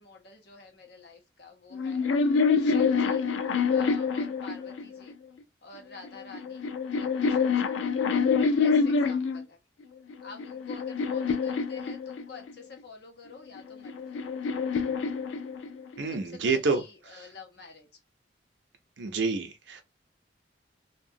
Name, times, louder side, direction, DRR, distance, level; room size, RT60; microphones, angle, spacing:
voice 1, 0.0-2.1 2.6-3.3 3.7-5.1 5.6-6.7 6.9-7.7 8.4-9.6 10.2-14.3 16.1-17.9, left 4 dB, 60° left, 0.7 m, -48 dB
sound 1, 1.7-5.1 6.0-9.4 10.1-12.5 13.6-16.0, left 5 dB, 85° left, 0.4 m, -26 dB
voice 2, 16.0-16.8 17.1-17.2 19.0-19.8, right 4 dB, 75° right, 0.6 m, -28 dB
2.7 x 2.2 x 2.6 m
head